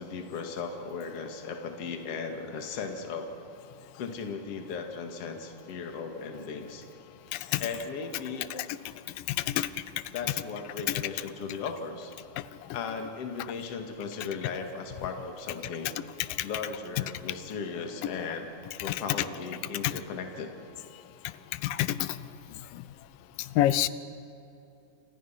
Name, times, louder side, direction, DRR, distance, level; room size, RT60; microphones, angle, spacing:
voice 1, 0.0-3.3 3.9-6.8 7.6-8.5 10.1-12.1 12.7-15.9 16.4-18.5 18.8-20.5, left 5 dB, 50° left, 4 dB, 2.7 m, -37 dB
voice 2, 9.3-9.7 21.6-22.1 23.6-23.9, left 13 dB, 90° left, 16 dB, 2.5 m, -26 dB
28.5 x 25.5 x 5.8 m, 2.9 s
omnidirectional pair, 3.8 m